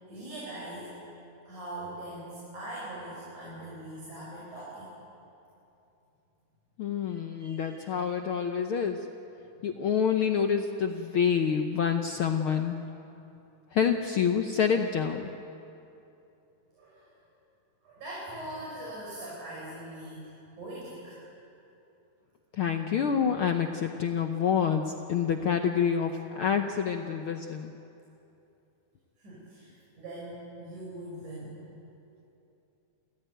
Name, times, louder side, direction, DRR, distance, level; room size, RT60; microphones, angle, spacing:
voice 1, 0.1-0.9 1.5-4.9 7.3-7.8 9.5-9.6 16.7-17.1 17.8-21.2 29.2-31.6, right 1 dB, 80° right, -6 dB, 6.7 m, -42 dB
voice 2, 6.8-9.0 9.6-12.8 13.7-15.3 22.5-27.7, left 7 dB, 70° left, 5 dB, 1.3 m, -27 dB
29.5 x 15.0 x 9.3 m, 2.8 s
omnidirectional pair, 3.5 m